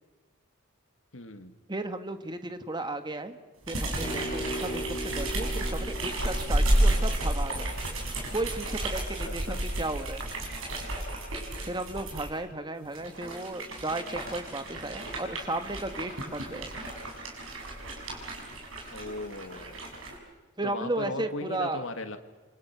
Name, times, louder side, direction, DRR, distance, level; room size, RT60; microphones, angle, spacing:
voice 1, 1.1-1.5 9.2-9.8 11.6-11.9 18.9-19.9 20.6-22.2, left 2 dB, 70° left, 7 dB, 2.3 m, -38 dB
voice 2, 1.7-3.4 3.7-7.7 8.3-10.2 11.7-16.7 20.6-21.8, right 2 dB, 20° right, 8 dB, 1.4 m, -34 dB
sound 1, 3.6-12.3 12.9-20.1, right 1 dB, 75° right, 7.0 m, -31 dB
sound 2, 4.0-8.5, right 1 dB, 30° left, 2.6 m, -39 dB
28.5 x 26.0 x 6.1 m, 1.3 s
head